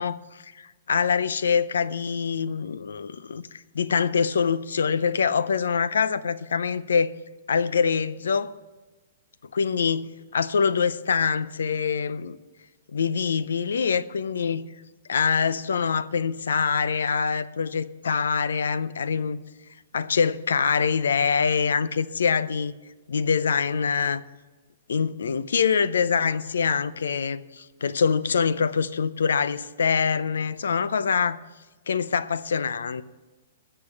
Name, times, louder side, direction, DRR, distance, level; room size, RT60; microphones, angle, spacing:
voice 1, 0.0-7.1 7.5-8.5 9.5-12.4 12.9-14.7 15.1-19.4 19.9-22.8 23.1-24.2 24.9-31.4 31.9-33.0, left 6 dB, 90° left, 0.5 m, -24 dB
13.0 x 6.8 x 7.2 m
hypercardioid pair, 150°, 0 cm